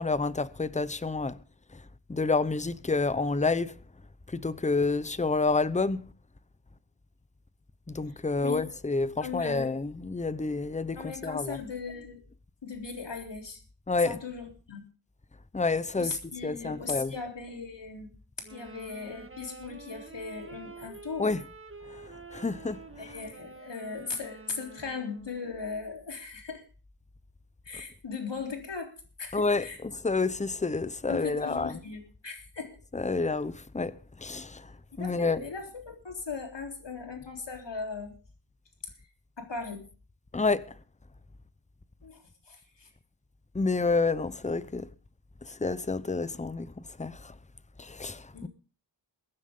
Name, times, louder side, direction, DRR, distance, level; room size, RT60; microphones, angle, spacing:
voice 1, 0.0-1.4 2.1-3.8 4.3-6.1 7.9-11.6 13.9-14.2 15.5-16.1 16.4-17.1 21.2-21.4 22.3-22.8 29.3-31.8 32.9-33.9 34.2-34.7 35.0-35.4 40.3-40.7 43.5-44.9 45.5-46.7 47.0-47.3 47.8-48.5, left 3 dB, 15° left, 0.8 m, -29 dB
voice 2, 9.2-9.7 11.0-12.2 12.6-13.6 14.0-14.8 15.9-18.1 18.5-21.3 23.0-26.6 27.7-29.8 31.1-32.8 35.0-38.1 39.4-39.9 42.0-42.9 48.3-48.5, left 4 dB, 65° left, 3.7 m, -38 dB
sound 1, 18.4-25.5, right 4 dB, 25° right, 1.6 m, -48 dB
22.5 x 9.7 x 3.7 m
wide cardioid pair, 70°, 46 cm